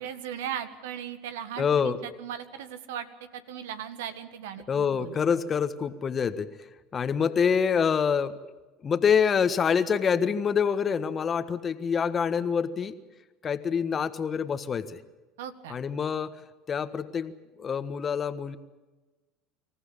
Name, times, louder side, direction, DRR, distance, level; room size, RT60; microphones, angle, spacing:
voice 1, 0.0-5.2 15.4-15.8, right 9 dB, 85° right, 11 dB, 1.6 m, -38 dB
voice 2, 1.6-2.0 4.7-6.5 6.9-8.3 8.8-12.9 13.4-15.0 15.7-16.3 16.7-18.6, left 6 dB, 35° left, 11 dB, 1.5 m, -26 dB
26.0 x 14.5 x 8.7 m, 1.2 s
hypercardioid pair, 90°, 0 cm